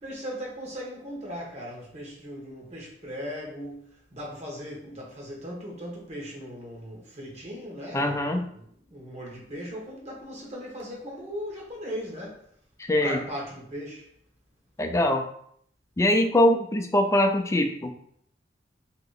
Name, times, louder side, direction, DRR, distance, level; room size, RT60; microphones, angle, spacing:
voice 1, 0.0-12.4 13.0-14.1, equal, 40° right, -3 dB, 1.2 m, -38 dB
voice 2, 7.9-8.5 12.8-13.2 14.8-15.3 16.0-17.9, left 1 dB, 15° left, 4 dB, 0.4 m, -22 dB
3.0 x 2.9 x 3.9 m, 0.64 s
head